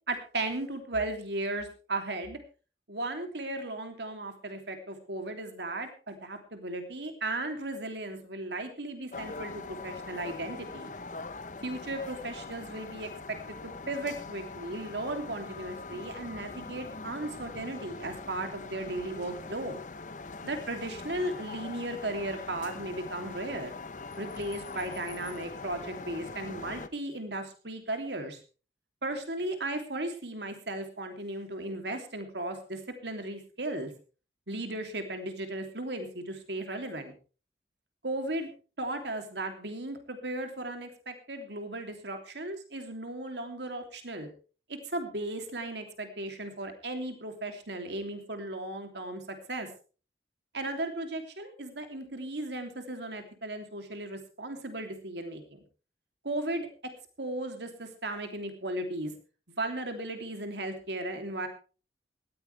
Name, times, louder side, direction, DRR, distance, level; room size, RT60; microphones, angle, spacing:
voice 1, 0.1-2.4 2.9-10.9 11.6-19.8 20.4-23.7 24.1-28.4 29.0-33.9 34.5-37.1 38.0-38.5 38.8-44.3 44.7-49.2 49.5-49.7 50.5-55.6 56.2-56.7 57.2-59.1 59.6-61.5, right 2 dB, 75° right, 6 dB, 3.1 m, -36 dB
sound 1, 9.1-26.9, left 3 dB, 45° left, 0.9 m, -42 dB
18.0 x 14.5 x 3.4 m, 0.36 s
head